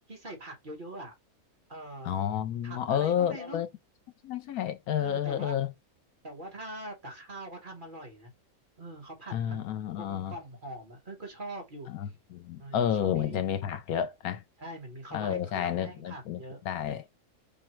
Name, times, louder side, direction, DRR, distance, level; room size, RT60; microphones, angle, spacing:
voice 1, 0.1-1.1 1.7-2.1 2.6-3.6 5.0-5.6 6.2-8.3 8.8-9.7 10.0-11.9 12.6-13.5 14.6-16.6, right 1 dB, 35° right, 1.6 m, -43 dB
voice 2, 2.0-3.7 4.2-5.7 9.3-10.3 11.9-14.4 15.1-16.4 16.6-17.1, left 9 dB, 80° left, 1.1 m, -30 dB
5.2 x 2.2 x 4.4 m
omnidirectional pair, 1.5 m